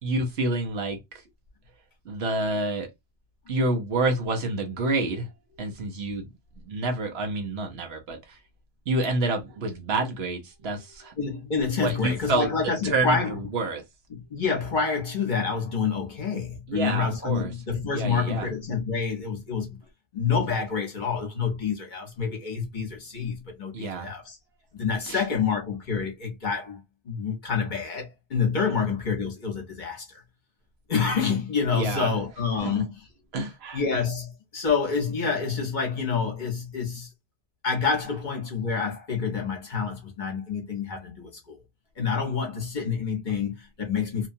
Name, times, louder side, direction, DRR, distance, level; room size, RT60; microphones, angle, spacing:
voice 1, 0.0-1.2 2.0-2.9 3.5-5.3 5.6-6.3 6.6-8.4 8.9-11.1 11.8-12.5 12.8-13.8 16.7-17.5 17.9-18.6 23.7-24.1 25.1-25.2 31.7-32.1 32.6-32.9 33.3-33.8, right 2 dB, 70° right, 1.0 m, -28 dB
voice 2, 11.2-13.3 14.1-19.8 20.1-24.4 24.7-26.8 27.1-30.2 30.9-32.9 33.7-37.1 37.6-41.6 42.0-44.3, left 5 dB, 50° left, 1.0 m, -28 dB
2.8 x 2.3 x 2.6 m
omnidirectional pair, 1.1 m